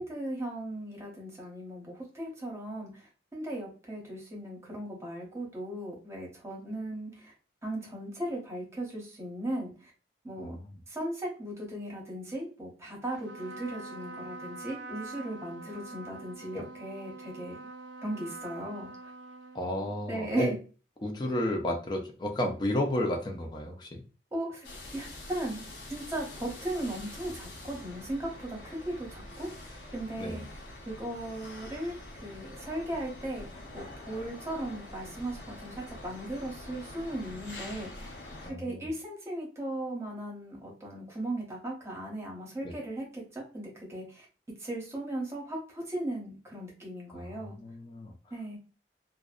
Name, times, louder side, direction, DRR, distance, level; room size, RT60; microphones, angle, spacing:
voice 1, 0.0-7.3 7.6-9.9 10.2-10.6 10.9-17.6 18.0-18.9 20.1-20.5 24.3-24.7 24.9-25.6 25.9-29.5 29.9-30.4 30.9-33.5 33.7-38.1 38.6-44.3 44.6-47.6 48.3-48.6, right 1 dB, 15° right, -2 dB, 0.8 m, -37 dB
voice 2, 10.4-10.8 16.5-16.7 19.5-20.6 21.0-24.0 30.2-30.5 38.4-38.9 42.6-42.7 47.1-48.1, left 1 dB, 25° left, 2 dB, 0.4 m, -32 dB
Trumpet, 13.2-20.0, right 2 dB, 80° right, 0.4 m, -45 dB
sound 1, 24.6-38.5, left 1 dB, 85° left, 0.8 m, -45 dB
2.6 x 2.1 x 2.3 m, 0.35 s
head